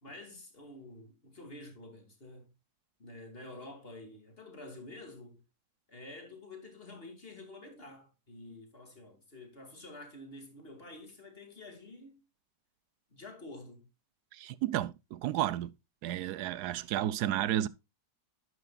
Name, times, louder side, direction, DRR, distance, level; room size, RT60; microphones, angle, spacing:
voice 1, 0.0-2.5 3.0-5.4 5.9-12.2 13.1-13.9, left 2 dB, 35° left, 2.6 m, -49 dB
voice 2, 14.3-15.7 16.0-17.7, right 12 dB, 85° right, 1.2 m, -32 dB
11.0 x 9.7 x 2.3 m
omnidirectional pair, 1.7 m